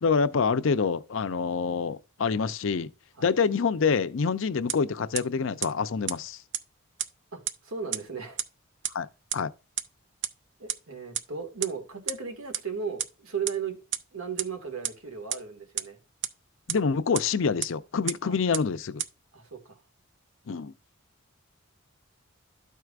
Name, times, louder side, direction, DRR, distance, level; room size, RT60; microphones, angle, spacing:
voice 1, 0.0-2.9 3.2-6.4 8.9-9.1 9.3-9.5 16.7-19.0 20.5-20.7, left 5 dB, 65° left, 0.5 m, -26 dB
sound 1, 4.7-4.8 5.1-5.2 5.6-5.7 6.1-6.2 6.5-6.6 7.0-7.1 7.5-7.6 7.9-8.0 8.4-8.5 8.8-8.9 9.3-9.4 9.8-9.9 10.2-10.3 10.7-10.8 11.1-11.2 11.6-11.7 12.1-12.2 12.5-12.6 13.0-13.1 13.5-13.6 13.9-14.0 14.4-14.5 14.8-14.9 15.3-15.4 15.8-15.9 16.2-16.3 16.7-16.8 17.1-17.2 17.6-17.7 18.1-18.2 18.5-18.6 19.0-19.1, right 10 dB, 60° right, 0.5 m, -28 dB
voice 2, 7.3-8.4 10.6-13.8 14.1-16.0 18.2-18.4 19.3-19.8, right 6 dB, 75° right, 1.7 m, -36 dB
13.0 x 4.6 x 2.4 m
head